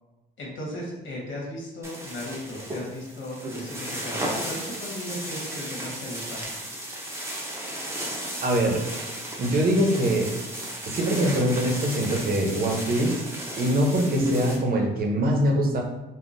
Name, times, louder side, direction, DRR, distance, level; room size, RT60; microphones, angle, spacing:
voice 1, 0.4-6.4, left 1 dB, 70° left, -3 dB, 1.2 m, -36 dB
sound 1, 1.8-14.6, right 1 dB, 10° right, 0.7 m, -34 dB
voice 2, 8.4-8.8 9.4-10.3 10.9-13.2 13.6-15.8, right 1 dB, 50° right, 1 dB, 0.7 m, -23 dB
3.6 x 2.2 x 2.5 m, 1.0 s
cardioid pair, 90°, 20 cm